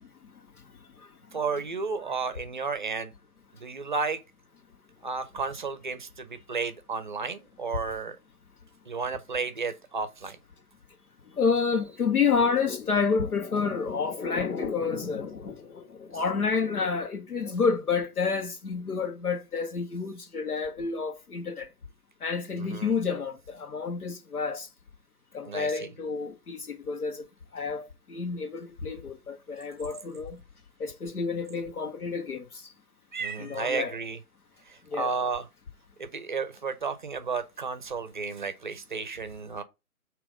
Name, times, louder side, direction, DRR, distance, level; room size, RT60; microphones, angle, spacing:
voice 1, 1.3-3.1 3.6-4.2 5.0-8.2 8.9-10.4 22.5-23.0 25.5-25.9 33.1-34.2 34.7-35.5 36.0-39.6, right 4 dB, 35° right, 0.6 m, -32 dB
voice 2, 11.4-21.7 22.2-24.7 25.3-27.2 27.5-30.4 30.8-32.4 33.4-33.9 34.9-35.2, left 5 dB, 85° left, 1.5 m, -29 dB
7.1 x 3.0 x 4.9 m
hypercardioid pair, 160°, 44 cm